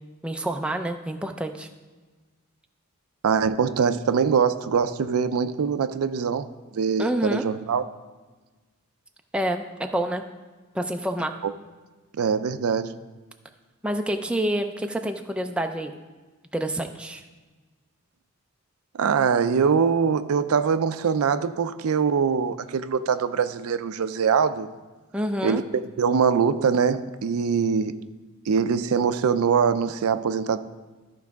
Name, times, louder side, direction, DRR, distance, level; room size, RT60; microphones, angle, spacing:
voice 1, 0.2-1.7 7.0-7.4 9.3-10.2 10.7-11.3 13.8-15.9 16.5-17.2 25.1-25.6, right 1 dB, 5° right, 0.4 m, -27 dB
voice 2, 3.2-6.5 6.7-7.8 11.4-11.5 12.1-13.0 18.9-24.7 25.4-28.1 28.5-30.6, right 6 dB, 85° right, 0.4 m, -23 dB
13.5 x 4.7 x 3.5 m
head